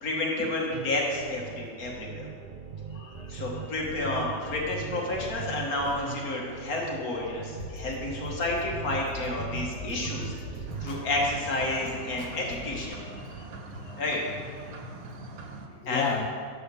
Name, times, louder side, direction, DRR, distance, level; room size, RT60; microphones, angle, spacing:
voice 1, 0.0-2.3 3.3-10.3 10.8-13.0 14.0-14.2 15.9-16.1, left 2 dB, 90° left, -2 dB, 1.9 m, -30 dB
sound 1, 0.7-11.4, right 7 dB, 70° right, 0.4 m, -40 dB
voice 2, 2.9-3.3 3.5-3.7 4.4-4.5 5.2-5.3 9.7-10.5 12.9-13.5 13.8-14.0 15.8-16.3, left 7 dB, 60° left, 2 dB, 0.9 m, -36 dB
sound 2, 7.6-12.8, left 2 dB, 35° left, 1.1 m, -42 dB
sound 3, 10.7-15.7, right 3 dB, 85° right, 1.4 m, -42 dB
10.5 x 4.2 x 6.9 m, 2.2 s
omnidirectional pair, 1.5 m